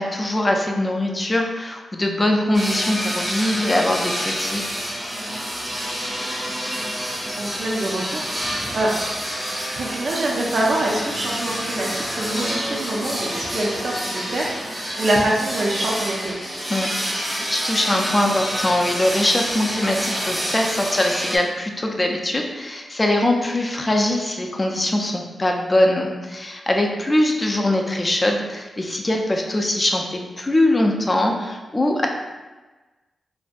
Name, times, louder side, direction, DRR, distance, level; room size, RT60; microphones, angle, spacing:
voice 1, 0.0-4.6 16.7-16.9 17.5-32.1, left 1 dB, 25° left, 2 dB, 0.4 m, -22 dB
sound 1, 2.5-21.4, equal, 10° right, 0.7 m, -28 dB
voice 2, 7.3-8.9 9.8-16.4, right 1 dB, 60° right, -3 dB, 0.4 m, -25 dB
2.5 x 2.2 x 2.5 m, 1.2 s
cardioid pair, 70°, 0 cm